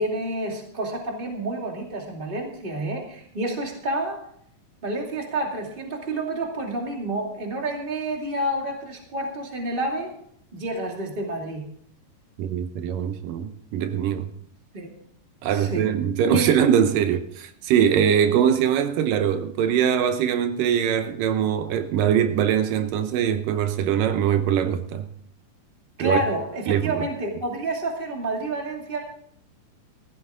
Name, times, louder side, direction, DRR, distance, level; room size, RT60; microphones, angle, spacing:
voice 1, 0.0-4.2 4.8-10.1 10.5-11.7 14.7-14.9 15.5-15.9 16.3-16.5 26.0-29.0, right 1 dB, 15° right, 2.3 m, -29 dB
voice 2, 12.4-14.3 15.4-25.1 26.0-26.2 26.7-27.1, right 9 dB, 80° right, 2.5 m, -22 dB
15.5 x 13.5 x 3.8 m
omnidirectional pair, 3.9 m